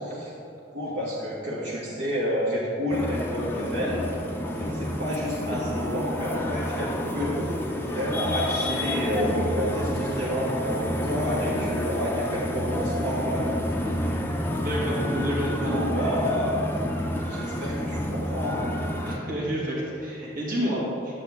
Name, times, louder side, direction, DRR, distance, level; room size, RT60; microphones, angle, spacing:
voice 1, 0.7-4.0 4.4-7.3 7.7-13.5 14.9-16.6 17.2-18.6, equal, 60° right, -8 dB, 1.7 m, -30 dB
sound 1, 2.9-19.2, left 1 dB, 10° left, 0.6 m, -29 dB
voice 2, 14.6-15.7 19.0-21.1, equal, 45° right, -5 dB, 2.0 m, -29 dB
10.5 x 7.7 x 3.6 m, 2.8 s
head